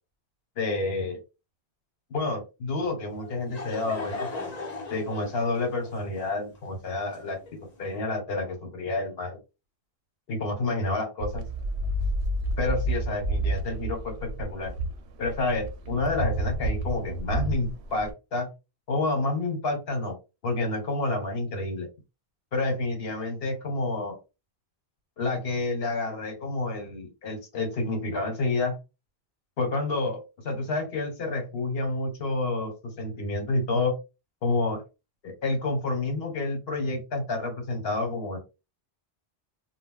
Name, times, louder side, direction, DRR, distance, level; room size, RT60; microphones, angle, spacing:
voice 1, 0.6-1.2 2.1-4.3 4.9-7.4 7.8-9.4 10.3-11.4 12.6-14.7 15.2-18.5 18.9-20.2 20.4-21.9 22.5-24.2 25.2-28.7 29.6-33.9 34.4-34.8 35.2-38.4, left 2 dB, 65° left, 4 dB, 1.2 m, -29 dB
Laughter / Crowd, 3.1-7.8, left 3 dB, 45° left, 0.8 m, -38 dB
sound 1, 11.2-18.1, right 1 dB, 90° right, 0.9 m, -30 dB
2.2 x 2.1 x 3.6 m, 0.28 s
omnidirectional pair, 1.1 m